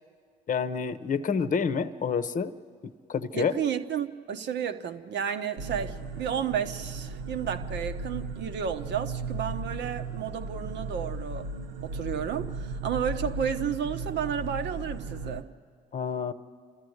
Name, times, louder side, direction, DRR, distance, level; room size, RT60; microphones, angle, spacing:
voice 1, 0.5-2.5 2.8-3.5 15.9-16.3, left 6 dB, 40° left, 0.9 m, -28 dB
voice 2, 3.3-11.5 11.8-15.5, right 8 dB, 60° right, 1.0 m, -32 dB
sound 1, 5.6-15.4, right 3 dB, 80° right, 0.8 m, -36 dB
29.5 x 13.5 x 8.0 m
hypercardioid pair, 55°, 21 cm